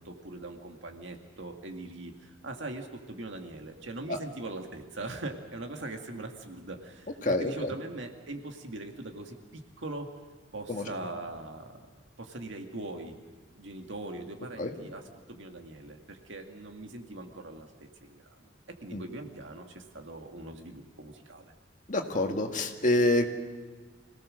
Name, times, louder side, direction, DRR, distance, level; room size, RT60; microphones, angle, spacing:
voice 1, 0.0-10.1 10.5-13.2 13.5-21.5, right 2 dB, 70° right, 3 dB, 2.2 m, -41 dB
voice 2, 7.2-7.7 10.7-10.8 14.6-14.7 18.9-19.0 21.9-23.3, left 1 dB, 40° left, 3 dB, 2.0 m, -27 dB
26.0 x 18.0 x 6.5 m, 1.5 s
head